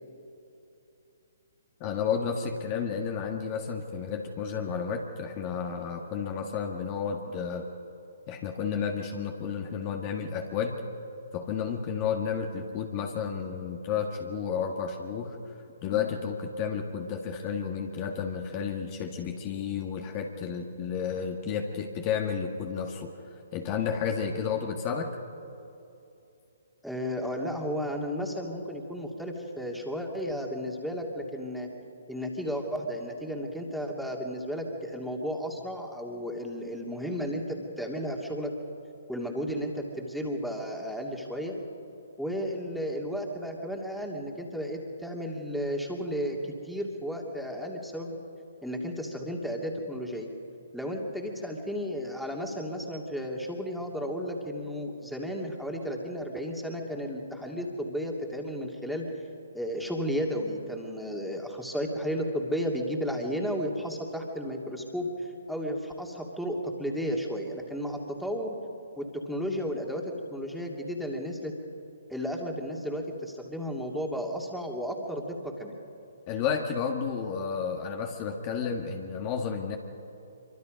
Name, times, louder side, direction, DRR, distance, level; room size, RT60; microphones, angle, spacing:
voice 1, 1.8-7.7 8.3-10.8 11.3-15.4 15.8-23.1 23.5-25.2 76.3-79.8, left 6 dB, 30° left, 2 dB, 1.9 m, -31 dB
voice 2, 26.8-31.7 32.1-37.4 37.8-38.5 39.1-41.6 42.2-48.2 48.6-50.3 50.7-59.0 59.5-68.5 69.0-70.0 70.3-71.5 72.1-75.8, equal, ahead, 0 dB, 2.7 m, -33 dB
26.0 x 24.5 x 5.3 m, 2.9 s
figure-of-eight pair, 130°, 0 cm